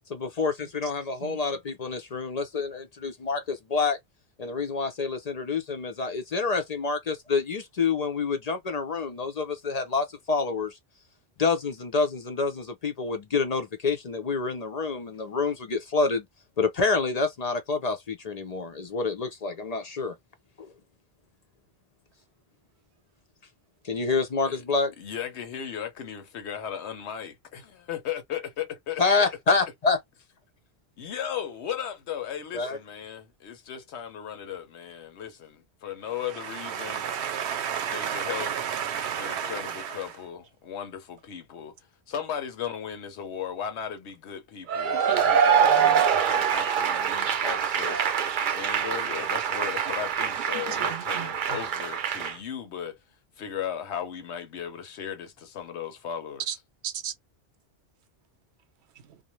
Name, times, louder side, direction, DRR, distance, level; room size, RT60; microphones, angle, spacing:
voice 1, 0.1-4.0 4.4-10.7 11.4-16.3 16.6-20.1 20.6-20.7 23.8-24.9 29.0-30.0 32.5-32.8, left 4 dB, 50° left, 0.5 m, -27 dB
voice 2, 25.0-29.3 31.0-37.1 37.9-38.5 39.2-41.8 42.1-53.0 53.4-56.4, left 9 dB, 90° left, 1.1 m, -36 dB
voice 3, 36.1-40.2 44.9-45.3 45.6-46.0 49.8-49.9 50.5-51.6 56.5-56.6 56.8-57.1 59.1-59.2, right 8 dB, 85° right, 0.9 m, -33 dB
Cheering / Applause / Crowd, 44.7-52.3, right 7 dB, 60° right, 0.6 m, -24 dB
2.5 x 2.0 x 3.0 m
omnidirectional pair, 1.1 m